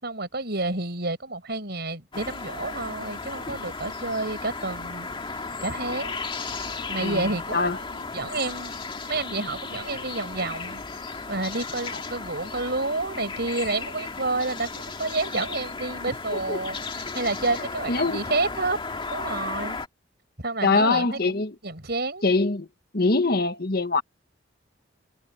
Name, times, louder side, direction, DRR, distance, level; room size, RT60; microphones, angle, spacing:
voice 1, 0.0-5.1 5.6-6.2 6.9-8.7 9.1-10.8 11.3-18.8 19.1-19.8 20.4-22.3, right 3 dB, 60° right, 6.8 m, -30 dB
sound 1, 2.1-19.9, left 4 dB, 30° left, 2.2 m, -35 dB
voice 2, 17.9-18.2 20.6-21.5 22.2-22.7 22.9-24.0, left 3 dB, 55° left, 1.6 m, -23 dB
head